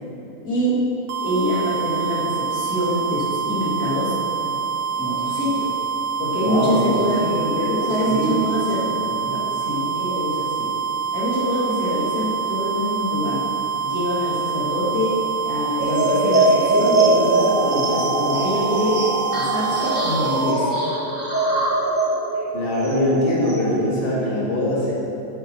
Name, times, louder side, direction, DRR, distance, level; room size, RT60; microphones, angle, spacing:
voice 1, 0.4-0.8 1.2-4.2 5.0-5.7 6.2-9.1 9.6-10.7 11.1-13.4 13.8-15.2 15.5-19.0 19.3-20.8, equal, 80° left, -7 dB, 2.5 m, -25 dB
sound 1, 1.1-20.6, right 6 dB, 85° right, 1.1 m, -26 dB
voice 2, 6.3-8.3 9.2-9.4 22.5-24.9, left 1 dB, 35° left, -6 dB, 2.1 m, -23 dB
sound 2, 15.8-23.8, right 2 dB, 30° right, 1.7 m, -22 dB
8.9 x 8.8 x 4.3 m, 2.8 s
omnidirectional pair, 1.6 m